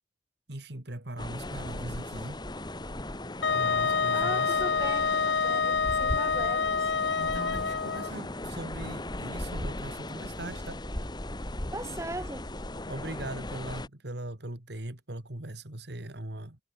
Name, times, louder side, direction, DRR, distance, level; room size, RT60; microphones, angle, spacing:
voice 1, 0.5-2.4 3.5-4.6 7.1-10.8 12.9-16.6, right 1 dB, 65° right, 2.5 m, -40 dB
sound 1, 1.2-13.9, left 1 dB, 25° left, 1.9 m, -37 dB
Wind instrument woodwind instrument, 3.4-8.1, left 5 dB, 70° left, 1.1 m, -27 dB
voice 2, 4.1-6.9 11.7-12.5, right 2 dB, 15° right, 5.5 m, -39 dB
head